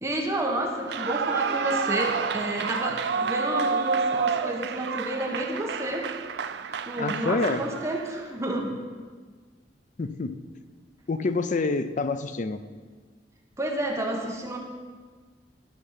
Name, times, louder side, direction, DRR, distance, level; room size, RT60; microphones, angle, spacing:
voice 1, 0.0-6.1 6.9-8.7 13.6-14.6, right 1 dB, 15° right, 0 dB, 1.2 m, -30 dB
Clapping / Cheering / Applause, 0.8-8.2, right 5 dB, 70° right, 0.4 m, -29 dB
voice 2, 7.0-7.6 10.0-10.3 11.1-12.6, left 3 dB, 45° left, 11 dB, 0.5 m, -27 dB
13.0 x 6.6 x 5.7 m, 1.5 s
head